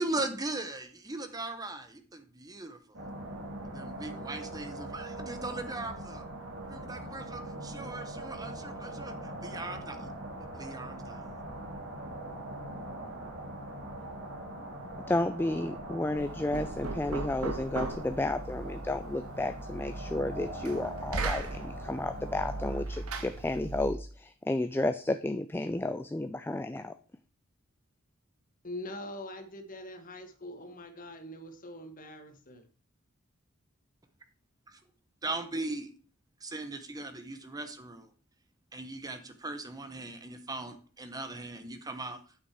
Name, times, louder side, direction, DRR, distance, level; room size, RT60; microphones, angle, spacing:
voice 1, 0.0-3.0 3.7-6.2 6.6-10.1 10.5-11.2 35.2-35.9 36.4-38.1 38.7-42.2, right 2 dB, 15° right, 0.9 m, -39 dB
sound 1, 2.9-22.8, right 1 dB, 60° right, 2.5 m, -42 dB
voice 2, 15.1-26.9, left 2 dB, 10° left, 0.3 m, -32 dB
Knock, 16.2-24.1, right 3 dB, 90° right, 1.3 m, -38 dB
voice 3, 28.6-32.7, left 1 dB, 40° left, 1.5 m, -43 dB
8.2 x 6.2 x 4.7 m
head